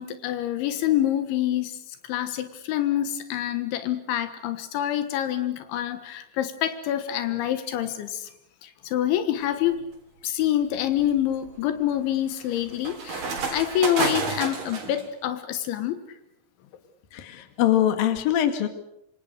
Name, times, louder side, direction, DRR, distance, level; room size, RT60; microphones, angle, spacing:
voice 1, 0.0-1.7 2.1-8.3 8.6-9.8 10.2-16.0, left 11 dB, 85° left, 10 dB, 3.8 m, -26 dB
sound 1, 9.5-9.8 10.4-15.0, right 4 dB, 50° right, 5.2 m, -31 dB
voice 2, 17.1-18.7, left 11 dB, 55° left, 8 dB, 3.6 m, -23 dB
26.5 x 26.5 x 6.6 m, 0.79 s
omnidirectional pair, 5.2 m